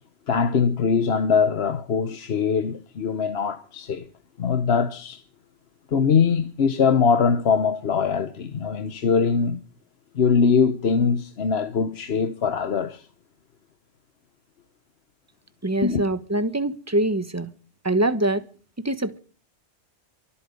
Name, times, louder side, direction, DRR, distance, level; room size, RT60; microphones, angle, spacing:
voice 1, 0.3-4.0 4.4-5.2 5.9-9.6 10.1-13.1 15.8-16.0, left 6 dB, 65° left, 1.2 m, -22 dB
voice 2, 15.6-17.5 17.8-18.4 18.8-19.2, right 1 dB, 15° right, 1.1 m, -24 dB
24.0 x 8.6 x 5.2 m
omnidirectional pair, 1.1 m